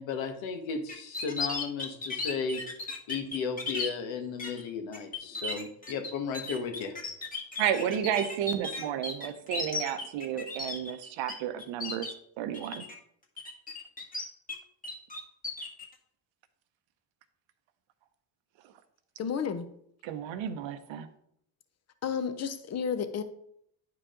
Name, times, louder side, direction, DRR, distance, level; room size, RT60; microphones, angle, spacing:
voice 1, 0.0-2.6 3.1-7.0, left 5 dB, 75° left, 6 dB, 1.5 m, -34 dB
sound 1, 0.9-3.9 4.4-4.6 4.9-11.3 11.6-12.1 12.5-12.9 13.4-14.6 14.8-15.8, left 3 dB, 20° left, 1.7 m, -35 dB
voice 2, 7.6-12.1 12.4-12.8 20.0-21.1, right 10 dB, 75° right, 9 dB, 0.8 m, -32 dB
voice 3, 19.2-19.7 22.0-23.2, left 7 dB, 35° left, 10 dB, 0.8 m, -31 dB
10.0 x 4.8 x 3.8 m, 0.71 s
cardioid pair, 100°, 46 cm